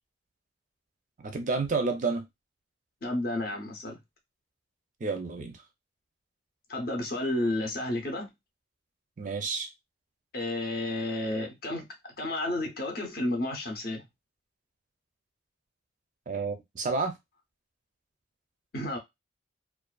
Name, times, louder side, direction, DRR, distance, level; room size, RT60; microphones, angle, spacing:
voice 1, 1.2-2.3 5.0-5.6 9.2-9.7 16.3-17.2, right 4 dB, 40° right, 0.4 m, -30 dB
voice 2, 3.0-4.0 6.7-8.3 10.3-11.9 12.2-14.0 18.7-19.0, left 1 dB, 50° left, 0.7 m, -31 dB
2.5 x 2.3 x 2.2 m
head